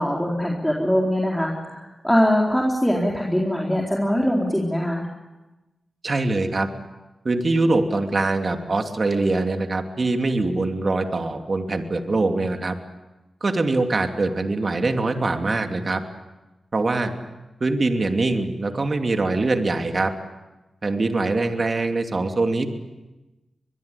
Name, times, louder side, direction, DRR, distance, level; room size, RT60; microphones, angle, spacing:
voice 1, 0.0-5.0, equal, 5° left, -2 dB, 4.2 m, -22 dB
voice 2, 6.0-6.7 7.2-12.7 13.4-16.0 16.7-17.1 17.6-20.1 20.8-22.7, right 2 dB, 50° right, 5 dB, 2.8 m, -23 dB
24.0 x 21.5 x 8.5 m, 1.1 s
cardioid pair, 50°, 0 cm